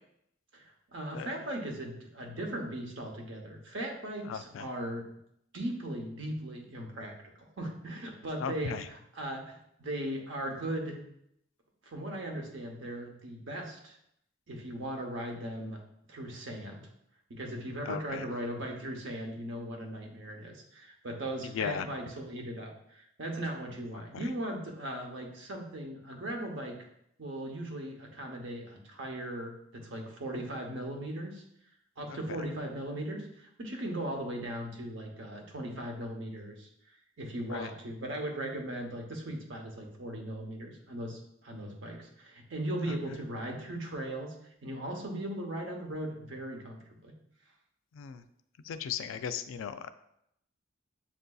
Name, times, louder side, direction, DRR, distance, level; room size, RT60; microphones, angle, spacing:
voice 1, 0.5-5.1 5.5-8.8 9.1-11.0 11.8-14.0 14.5-15.8 16.1-16.9 17.3-26.9 27.2-31.4 32.0-36.7 37.2-44.3 44.6-47.1, right 1 dB, 75° right, 2 dB, 0.8 m, -38 dB
voice 2, 4.2-4.7 8.4-8.9 17.9-18.3 21.4-21.9 23.9-24.3 32.1-32.2 37.5-37.7 42.9-43.0 47.9-48.3 48.6-49.9, left 7 dB, 90° left, 10 dB, 0.3 m, -37 dB
7.2 x 2.6 x 2.3 m, 0.76 s
head